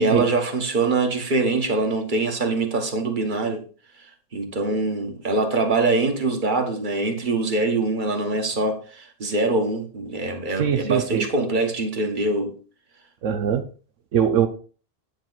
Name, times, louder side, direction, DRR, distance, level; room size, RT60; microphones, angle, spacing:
voice 1, 0.0-3.6 4.0-12.5, right 3 dB, 40° right, 1.6 m, -24 dB
voice 2, 10.6-11.3 13.2-13.6 14.1-14.5, right 8 dB, 80° right, 1.2 m, -21 dB
9.0 x 7.2 x 4.0 m
omnidirectional pair, 1.3 m